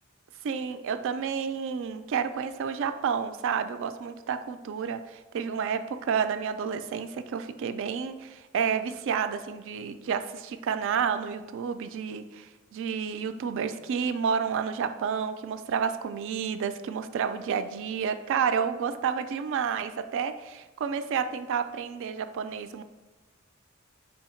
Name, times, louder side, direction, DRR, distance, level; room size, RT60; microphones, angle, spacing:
voice 1, 0.4-22.8, right 7 dB, 65° right, 10 dB, 0.3 m, -30 dB
4.4 x 2.7 x 4.3 m, 1.2 s
head